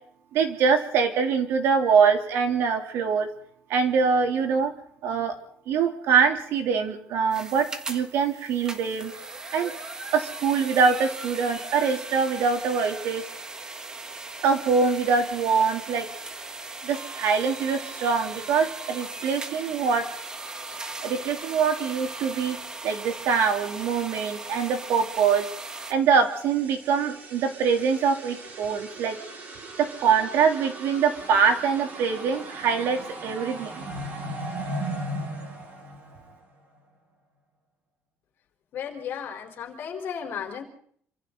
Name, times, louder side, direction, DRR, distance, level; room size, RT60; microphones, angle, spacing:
voice 1, 0.3-3.3 3.7-4.7 5.0-5.3 5.7-9.1 9.5-9.7 10.1-13.2 14.4-16.1 16.8-20.1 21.0-22.6 22.8-25.5 25.9-29.2 29.8-33.8, right 6 dB, 65° right, 4 dB, 3.3 m, -24 dB
sound 1, 7.3-25.9, right 2 dB, 15° right, 1.5 m, -38 dB
sound 2, 25.9-36.6, right 1 dB, 40° right, 5.2 m, -38 dB
voice 2, 38.7-40.6, left 7 dB, 50° left, 3 dB, 4.6 m, -34 dB
27.0 x 25.5 x 4.1 m, 0.64 s
cardioid pair, 170°, 5 cm